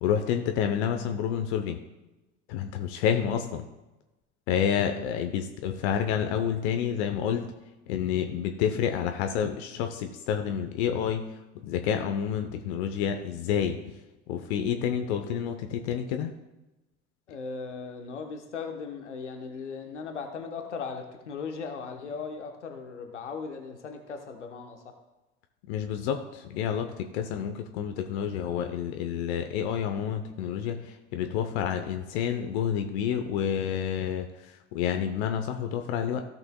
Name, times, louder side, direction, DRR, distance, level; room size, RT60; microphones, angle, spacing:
voice 1, 0.0-1.8 2.5-3.6 4.5-7.5 7.9-11.2 11.6-13.8 14.3-16.3 25.7-36.2, left 8 dB, 65° left, 6 dB, 0.8 m, -29 dB
voice 2, 17.3-24.9, left 5 dB, 85° left, 5 dB, 1.1 m, -38 dB
16.5 x 6.0 x 2.3 m, 1.0 s
figure-of-eight pair, 60°, 35 cm